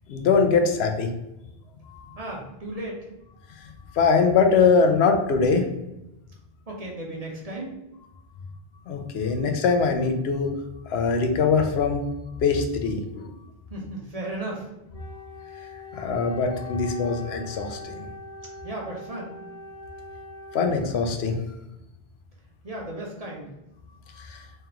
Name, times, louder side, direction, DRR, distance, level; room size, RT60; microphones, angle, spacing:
voice 1, 0.1-1.1 1.9-2.2 3.6-5.7 8.9-10.5 10.9-12.0 12.4-13.3 15.9-18.1 20.5-21.4 24.2-24.5, left 5 dB, 80° left, 5 dB, 0.9 m, -22 dB
voice 2, 2.2-3.1 6.7-7.7 13.7-14.7 18.6-19.3 22.6-23.5, right 1 dB, 40° right, -2 dB, 0.8 m, -35 dB
Wind instrument woodwind instrument, 14.9-21.3, left 3 dB, 55° left, 1.1 m, -42 dB
3.5 x 3.3 x 2.9 m, 0.92 s
omnidirectional pair, 1.0 m